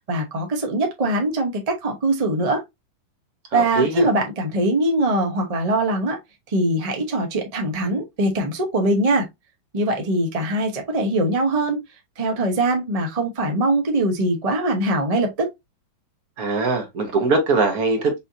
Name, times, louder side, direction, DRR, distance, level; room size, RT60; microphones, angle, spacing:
voice 1, 0.1-2.6 3.5-6.2 6.5-9.3 9.7-11.8 12.2-15.5, right 1 dB, 35° right, 0.6 m, -22 dB
voice 2, 3.5-4.1 16.4-18.1, right 3 dB, 55° right, 1.4 m, -21 dB
5.5 x 2.8 x 2.5 m
omnidirectional pair, 2.1 m